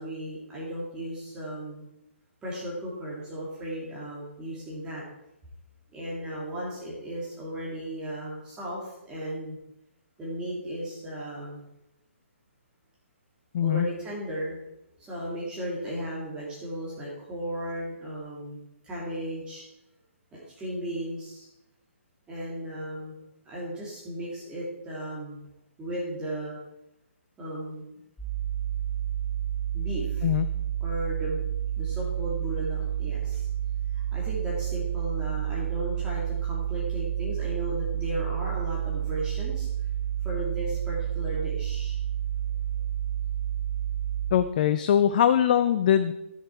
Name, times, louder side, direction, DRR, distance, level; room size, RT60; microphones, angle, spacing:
voice 1, 0.0-1.9 2.4-5.0 5.9-9.6 10.2-11.6 13.6-14.6 15.0-18.6 18.8-19.6 20.3-21.5 22.3-23.2 23.4-25.4 25.8-26.6 27.4-27.9 29.7-30.3 30.8-31.4 31.8-33.5 33.9-39.7 40.2-42.0, right 1 dB, 10° right, -6 dB, 2.8 m, -35 dB
voice 2, 13.5-13.9 30.2-30.5 44.3-46.1, left 10 dB, 40° left, 13 dB, 0.4 m, -22 dB
sound 1, 28.2-44.3, right 11 dB, 10° left, 1.8 m, -30 dB
12.0 x 7.2 x 4.6 m, 0.89 s
figure-of-eight pair, 130°, 7 cm